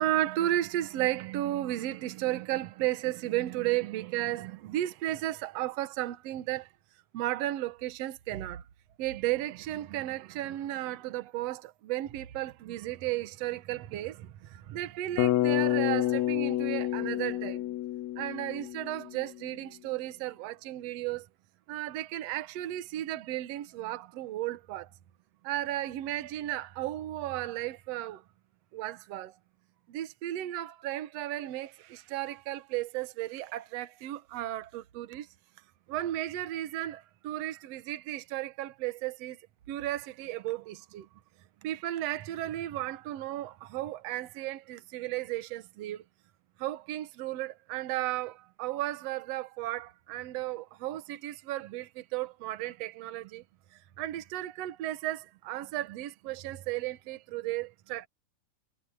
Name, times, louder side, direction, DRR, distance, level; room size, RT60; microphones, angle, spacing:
voice 1, 0.0-6.7 7.1-8.6 9.0-17.7 18.2-21.3 21.7-24.9 25.4-28.2 28.7-29.4 29.9-35.3 35.9-39.4 39.7-41.1 41.6-46.0 46.6-53.4 53.7-58.1, right 14 dB, 65° right, 1.9 m, -34 dB
Bass guitar, 15.2-19.3, left 14 dB, 75° left, 1.7 m, -29 dB
omnidirectional pair, 3.6 m